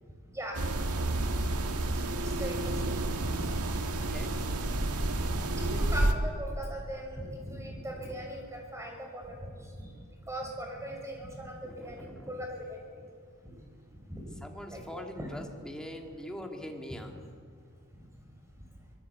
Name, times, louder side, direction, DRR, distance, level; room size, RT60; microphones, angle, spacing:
sound 1, 0.5-6.1, right 2 dB, 90° right, 1.7 m, -30 dB
voice 1, 2.1-2.8 3.2-3.4 4.7-4.8 5.6-9.9 10.3-11.6 11.8-12.8 14.1-14.2 14.7-14.8 15.2-15.3 17.9-18.0, right 1 dB, 15° right, 1 dB, 6.2 m, -39 dB
voice 2, 4.0-4.3 7.9-8.3 11.6-12.5 13.0-13.1 14.4-17.3, equal, 5° left, 2 dB, 2.5 m, -43 dB
23.5 x 21.5 x 8.5 m, 2.1 s
head